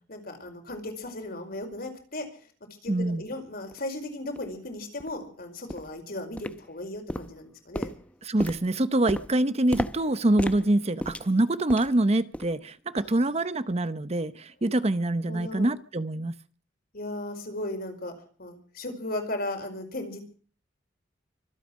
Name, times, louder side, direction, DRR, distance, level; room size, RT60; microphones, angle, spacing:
voice 1, 0.1-2.3 2.8-7.9 13.0-13.3 15.3-15.7 16.9-18.1 18.4-20.2, left 1 dB, 50° left, 5.2 m, -36 dB
voice 2, 2.9-3.3 8.2-16.3, right 1 dB, 35° right, 0.8 m, -25 dB
sound 1, 3.7-3.8 4.4-4.5 5.0-5.2 5.7-6.0 6.4-6.8 7.1-12.0 12.3-12.6 13.0-13.2 13.7-13.8, equal, 5° left, 0.8 m, -36 dB
25.0 x 9.1 x 6.3 m
head